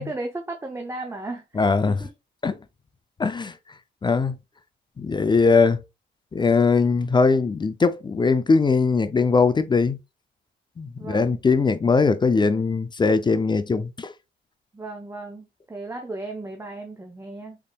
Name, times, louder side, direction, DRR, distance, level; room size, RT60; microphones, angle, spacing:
voice 1, 0.0-2.1 11.0-11.4 14.7-17.6, right 2 dB, 15° right, 0.7 m, -35 dB
voice 2, 1.6-2.0 2.4-2.6 3.2-3.6 4.0-4.4 5.0-5.8 6.3-10.0 10.8-14.1, left 4 dB, 25° left, 0.4 m, -20 dB
3.9 x 3.6 x 2.3 m
cardioid pair, 90°, 20 cm